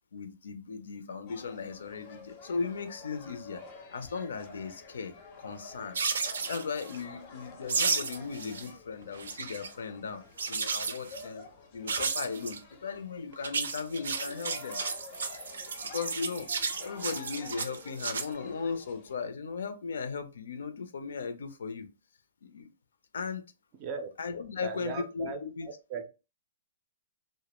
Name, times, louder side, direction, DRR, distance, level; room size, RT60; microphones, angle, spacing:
voice 1, 0.1-3.6 3.9-6.0 6.5-14.8 15.8-16.5 16.8-21.9 22.4-22.7 23.1-23.4 24.2-25.7, left 5 dB, 80° left, 0.5 m, -37 dB
sound 1, 1.3-19.1, left 3 dB, 30° left, 0.5 m, -50 dB
sound 2, 5.9-7.0 7.7-8.7 9.0-9.7 10.4-11.2 11.9-12.6 13.3-18.3, right 5 dB, 90° right, 0.4 m, -33 dB
voice 2, 23.8-24.1 24.6-26.0, right 5 dB, 30° right, 0.4 m, -38 dB
2.2 x 2.0 x 2.9 m
hypercardioid pair, 165°, 0 cm